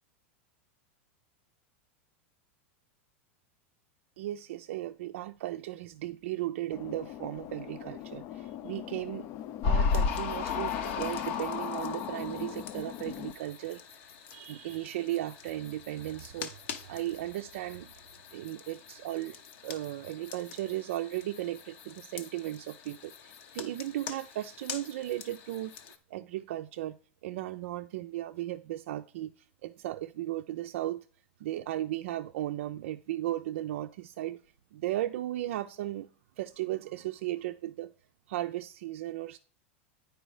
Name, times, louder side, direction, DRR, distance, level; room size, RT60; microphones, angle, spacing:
voice 1, 4.2-9.3 9.6-13.8 14.3-17.9 18.3-25.7 26.1-27.0 27.2-31.0 31.4-34.4 34.7-36.1 36.4-37.9 38.3-39.4, right 14 dB, 70° right, 0.4 m, -36 dB
sound 1, 6.7-13.3, left 12 dB, 45° left, 0.4 m, -41 dB
sound 2, 9.6-25.9, left 5 dB, 65° left, 0.9 m, -37 dB
9.1 x 4.6 x 4.8 m
hypercardioid pair, 110°, 7 cm